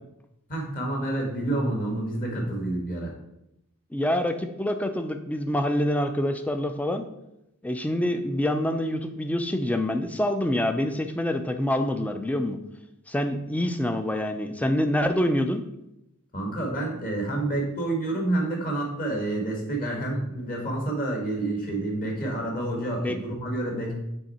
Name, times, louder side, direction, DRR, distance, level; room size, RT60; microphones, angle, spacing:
voice 1, 0.5-3.1 16.3-23.9, right 2 dB, 40° left, 0 dB, 1.5 m, -28 dB
voice 2, 3.9-7.1 7.6-12.6 13.1-15.6 23.0-23.2, left 1 dB, 5° left, 7 dB, 0.4 m, -26 dB
6.4 x 3.6 x 4.2 m, 0.84 s
head